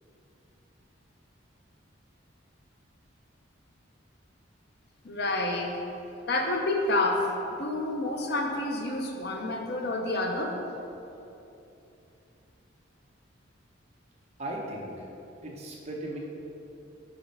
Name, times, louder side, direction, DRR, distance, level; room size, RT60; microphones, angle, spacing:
voice 1, 5.0-5.8 6.3-7.3 7.6-10.5, left 2 dB, 55° left, 2 dB, 0.7 m, -28 dB
voice 2, 14.4-15.1 15.4-16.2, right 1 dB, 35° right, -2 dB, 0.9 m, -37 dB
5.2 x 5.0 x 5.3 m, 2.8 s
head